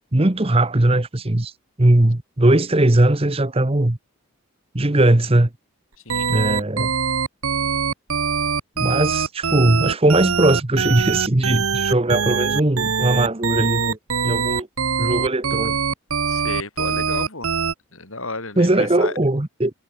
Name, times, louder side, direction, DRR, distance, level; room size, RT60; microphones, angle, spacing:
voice 1, 0.1-1.5 1.8-4.0 4.7-5.5 6.3-6.9 8.8-14.0 14.2-14.7 15.0-15.8 18.6-19.7, right 1 dB, 25° right, 1.0 m, -19 dB
sound 1, 6.1-17.7, right 6 dB, 75° right, 1.0 m, -23 dB
voice 2, 16.3-17.5 17.9-19.2, left 3 dB, 65° left, 7.8 m, -32 dB
head